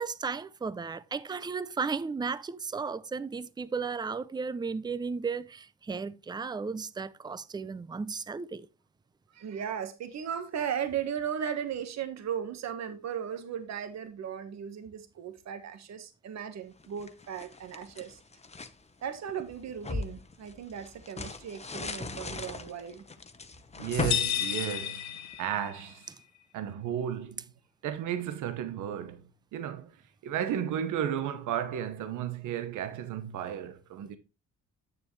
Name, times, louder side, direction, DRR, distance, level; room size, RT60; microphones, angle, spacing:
voice 1, 0.0-8.7, right 5 dB, 15° right, 0.5 m, -34 dB
voice 2, 9.3-18.2 19.0-23.0, right 8 dB, 60° right, 1.4 m, -36 dB
sound 1, 16.8-18.8 19.3-25.4, left 3 dB, 20° left, 0.9 m, -39 dB
voice 3, 23.8-25.1 25.4-26.1 26.5-27.4 27.8-29.2 29.5-29.9 30.2-34.2, right 9 dB, 85° right, 1.0 m, -33 dB
sound 2, 23.9-25.9, left 10 dB, 70° left, 1.1 m, -32 dB
8.6 x 6.8 x 3.2 m
cardioid pair, 90°, 30 cm